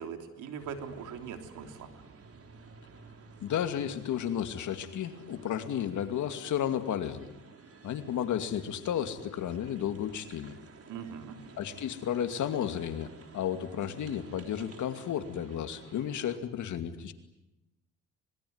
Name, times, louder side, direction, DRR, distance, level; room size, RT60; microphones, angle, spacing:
voice 1, 0.0-1.9 10.9-11.4, right 7 dB, 85° right, 6 dB, 3.4 m, -41 dB
sound 1, 0.6-16.4, right 4 dB, 50° right, 4.0 m, -53 dB
voice 2, 3.4-7.3 7.8-10.6 11.6-17.1, left 9 dB, 75° left, 8 dB, 2.5 m, -33 dB
26.0 x 22.0 x 9.6 m, 0.95 s
cardioid pair, 90°, 30 cm